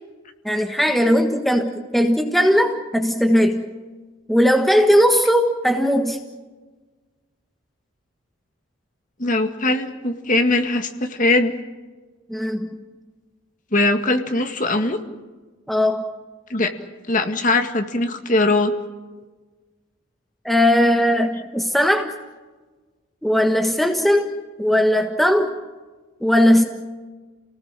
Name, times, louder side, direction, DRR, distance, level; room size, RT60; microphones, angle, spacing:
voice 1, 0.4-3.7 4.3-6.2 12.3-12.7 15.7-16.0 20.4-22.1 23.2-24.3 24.6-25.6 26.2-26.6, equal, ahead, 4 dB, 1.4 m, -18 dB
voice 2, 9.2-11.5 13.7-15.0 16.5-16.7 17.1-18.7, left 2 dB, 40° left, 6 dB, 2.0 m, -20 dB
29.5 x 19.0 x 7.6 m, 1.3 s
head